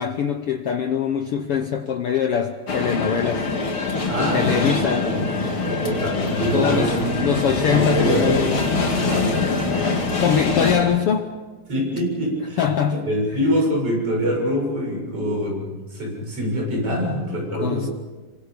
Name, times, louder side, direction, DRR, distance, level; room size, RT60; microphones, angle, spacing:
voice 1, 0.0-3.5 4.2-5.2 6.5-6.9 7.2-8.4 9.8-9.9 10.2-11.3 12.6-13.0 17.5-17.9, left 7 dB, 85° left, 1.2 m, -23 dB
sound 1, 2.7-10.8, left 3 dB, 40° left, 2.7 m, -24 dB
voice 2, 4.1-4.7 5.0-8.6 8.9-10.2 11.7-17.9, equal, 40° right, 8.2 m, -25 dB
26.5 x 25.0 x 5.2 m
omnidirectional pair, 3.9 m